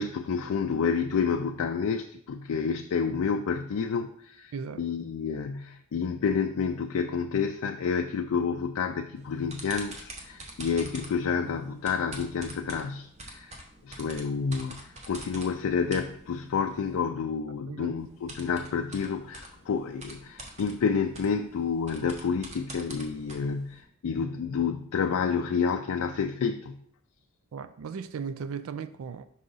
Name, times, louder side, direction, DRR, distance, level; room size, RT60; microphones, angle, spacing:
voice 1, 0.0-13.6 13.8-26.8, left 6 dB, 85° left, 0.4 m, -29 dB
voice 2, 4.5-4.9 11.4-11.6 17.7-18.0 27.5-29.3, right 6 dB, 75° right, 0.3 m, -37 dB
sound 1, 9.2-17.0 18.0-23.8, right 1 dB, 30° right, 0.9 m, -46 dB
5.5 x 4.9 x 4.0 m
head